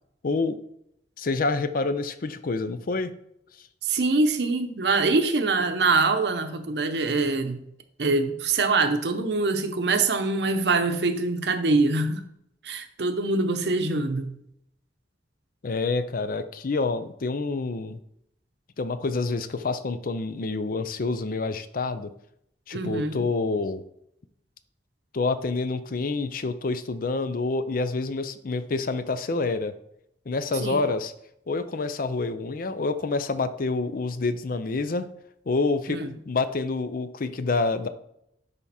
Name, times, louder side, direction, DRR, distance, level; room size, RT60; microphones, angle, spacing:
voice 1, 0.2-0.6 1.2-3.1 15.6-18.0 18.8-22.1 22.7-23.8 25.1-29.7 30.3-31.1 31.5-35.1 35.5-36.0 36.3-37.9, left 3 dB, 55° left, 11 dB, 0.5 m, -27 dB
voice 2, 3.8-7.6 8.0-12.3 12.6-14.3 22.7-23.2 30.5-30.8 35.9-36.1, right 3 dB, 70° right, 8 dB, 0.8 m, -24 dB
10.5 x 3.5 x 4.2 m, 0.75 s
head